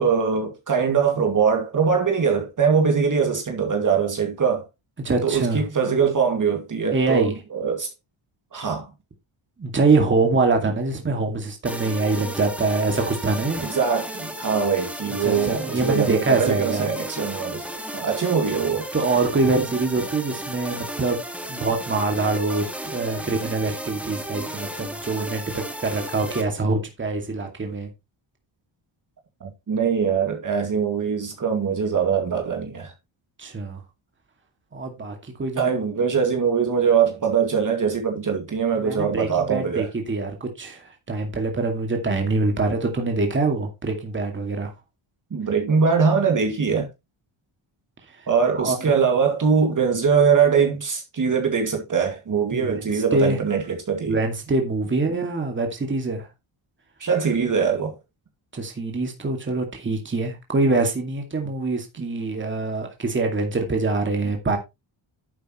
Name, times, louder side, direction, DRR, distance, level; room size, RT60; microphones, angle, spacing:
voice 1, 0.0-4.7 5.2-7.9 8.5-8.9 13.6-17.6 17.9-18.9 29.4-32.9 35.6-39.9 45.3-46.9 48.3-54.2 57.0-57.9, right 6 dB, 40° right, 2.3 m, -22 dB
voice 2, 5.0-5.6 6.9-7.3 9.6-13.7 15.2-16.9 18.9-21.2 21.5-22.7 22.9-27.9 33.4-33.8 34.7-35.7 38.8-44.7 48.5-48.8 52.5-53.4 54.0-56.3 58.5-64.6, right 3 dB, 25° right, 2.3 m, -24 dB
sound 1, 11.7-26.4, right 1 dB, 5° right, 1.7 m, -34 dB
10.5 x 8.3 x 3.1 m
wide cardioid pair, 150°, 49 cm